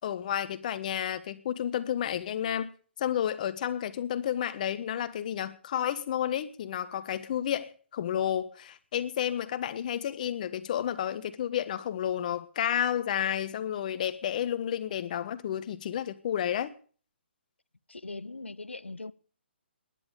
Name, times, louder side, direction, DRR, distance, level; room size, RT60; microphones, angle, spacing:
voice 1, 0.0-2.7 3.0-16.7, left 10 dB, 40° left, 1.3 m, -31 dB
voice 2, 17.9-19.1, left 3 dB, 90° left, 0.8 m, -40 dB
16.0 x 10.5 x 6.8 m
figure-of-eight pair, 135°, 6 cm